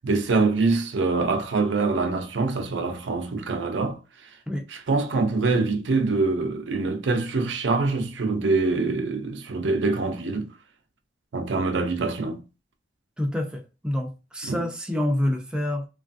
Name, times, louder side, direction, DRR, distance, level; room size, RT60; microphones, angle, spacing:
voice 1, 0.0-4.0 4.9-10.5 11.3-12.4 14.4-14.6, right 3 dB, 75° right, 0.5 m, -24 dB
voice 2, 13.2-15.9, left 1 dB, 5° right, 0.4 m, -27 dB
3.2 x 2.3 x 2.5 m
head